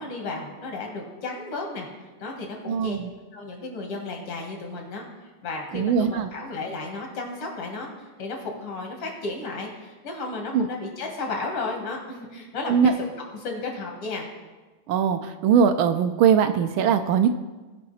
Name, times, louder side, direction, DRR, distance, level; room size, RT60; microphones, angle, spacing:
voice 1, 0.0-1.9 2.2-3.0 3.3-14.3, left 3 dB, 85° left, 1 dB, 2.8 m, -33 dB
voice 2, 2.7-3.1 5.7-6.3 10.5-10.7 12.7-12.9 14.9-17.3, right 7 dB, 75° right, 9 dB, 1.3 m, -21 dB
17.0 x 5.7 x 4.2 m, 1.2 s
omnidirectional pair, 2.4 m